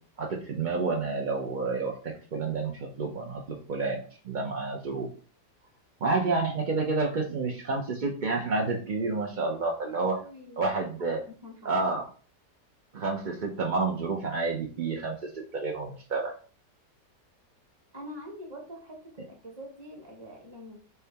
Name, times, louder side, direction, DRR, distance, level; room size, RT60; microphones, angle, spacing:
voice 1, 0.2-5.1 6.0-10.2 10.6-11.2 11.6-12.0 12.9-16.3, right 3 dB, 75° right, 0 dB, 0.4 m, -29 dB
voice 2, 9.9-10.7 11.0-11.8 17.9-20.8, equal, 20° right, 0 dB, 0.9 m, -45 dB
4.6 x 2.8 x 3.3 m, 0.39 s
omnidirectional pair, 1.8 m